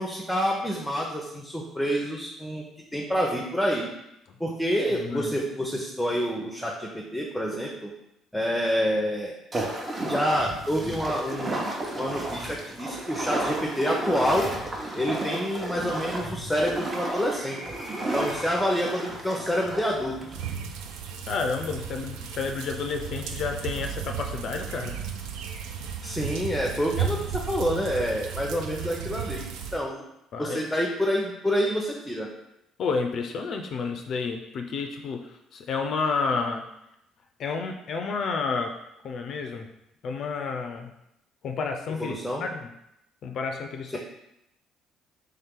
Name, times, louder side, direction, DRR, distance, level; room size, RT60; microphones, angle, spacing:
voice 1, 0.0-2.7 2.9-3.9 4.4-7.9 8.3-9.3 10.1-14.5 15.0-17.6 18.1-20.2 26.0-29.4 29.7-30.0 30.4-32.3 42.0-42.4 43.9-44.0, equal, 5° left, -2 dB, 0.7 m, -27 dB
voice 2, 5.0-5.4 21.3-24.9 30.3-30.6 32.8-36.6 37.4-38.7 39.0-39.7 40.0-40.9 41.4-42.1 42.4-42.7 43.2-44.0, left 4 dB, 60° left, 4 dB, 0.4 m, -30 dB
sound 1, 9.5-20.5, right 1 dB, 30° right, 0.9 m, -33 dB
sound 2, 20.3-29.8, right 7 dB, 75° right, 0.4 m, -34 dB
3.4 x 2.8 x 3.6 m, 0.84 s
hypercardioid pair, 60°, 0 cm